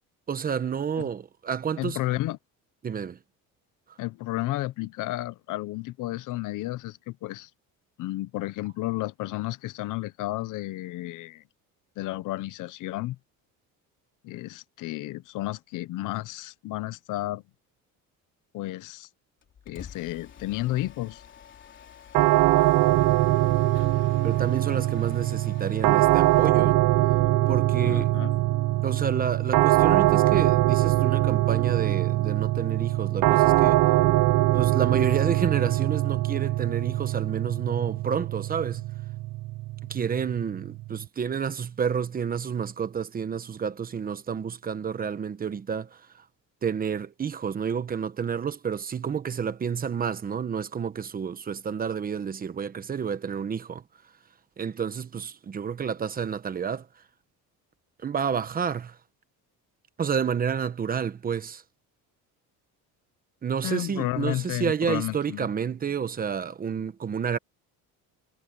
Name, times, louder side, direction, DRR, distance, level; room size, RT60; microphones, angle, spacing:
voice 1, 0.3-2.0 2.8-3.2 24.2-26.8 27.5-28.1 28.8-33.9 34.5-38.9 39.8-46.2 46.6-53.8 54.6-56.9 58.0-59.0 60.0-61.6 63.4-67.4, right 7 dB, 25° right, 1.1 m, -30 dB
voice 2, 1.8-2.4 4.0-7.5 8.0-11.4 12.0-13.2 14.2-17.4 18.5-19.1 19.7-21.2 27.8-28.3 63.6-65.5, left 17 dB, 65° left, 1.0 m, -32 dB
Mechanisms, 19.4-26.7, left 8 dB, 35° left, 3.3 m, -48 dB
sound 1, 22.1-41.0, right 17 dB, 70° right, 1.1 m, -23 dB
cardioid pair, 150°, 34 cm